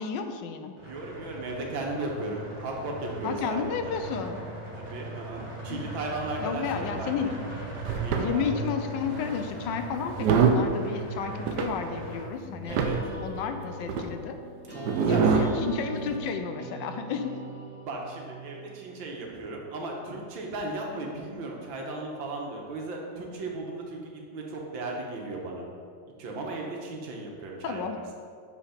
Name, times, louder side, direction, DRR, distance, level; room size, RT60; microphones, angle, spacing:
voice 1, 0.0-0.7 3.2-4.4 5.7-5.8 6.4-7.4 8.2-12.8 13.2-14.4 15.1-17.4 27.6-28.0, left 6 dB, 75° left, 7 dB, 1.2 m, -32 dB
sound 1, 0.8-12.2, right 1 dB, 20° right, 1.1 m, -39 dB
voice 2, 0.8-3.9 4.7-7.2 7.9-8.4 12.7-13.0 14.7-15.3 17.9-25.7 26.2-28.1, right 2 dB, 90° right, 0 dB, 1.8 m, -36 dB
sound 2, 7.8-8.3 9.2-9.5 10.0-10.7 11.5-11.7 12.2-12.3 12.6-13.1 13.9-14.0 14.8-15.5 16.0-16.2, right 6 dB, 70° right, 1.1 m, -24 dB
sound 3, 12.3-19.1, equal, 5° left, 1.6 m, -42 dB
6.6 x 5.1 x 5.0 m, 2.3 s
omnidirectional pair, 2.1 m